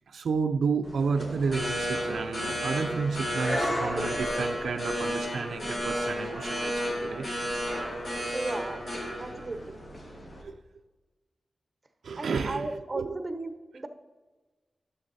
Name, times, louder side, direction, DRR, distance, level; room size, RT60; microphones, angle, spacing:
voice 1, 0.1-7.3 10.4-10.6 12.0-13.2, right 5 dB, 90° right, 0.4 m, -31 dB
sound 1, 0.8-10.4, equal, 45° left, 2.0 m, -32 dB
voice 2, 8.3-8.8 9.2-9.8 12.2-13.9, right 2 dB, 30° right, 0.9 m, -35 dB
10.5 x 7.0 x 4.1 m
wide cardioid pair, 110°, 0 cm